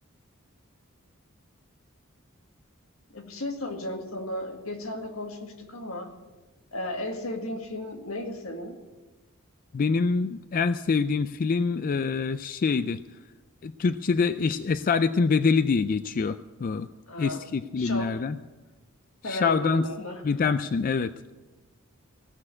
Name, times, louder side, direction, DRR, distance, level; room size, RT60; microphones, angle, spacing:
voice 1, 3.1-6.1 6.7-8.8 17.1-17.4 17.8-18.1 19.2-20.2, left 1 dB, 80° left, 4 dB, 1.9 m, -34 dB
voice 2, 9.7-13.0 13.6-16.9 17.2-18.4 19.2-19.8 20.2-21.1, left 5 dB, 40° left, 12 dB, 0.3 m, -25 dB
17.0 x 6.5 x 9.7 m, 1.2 s
head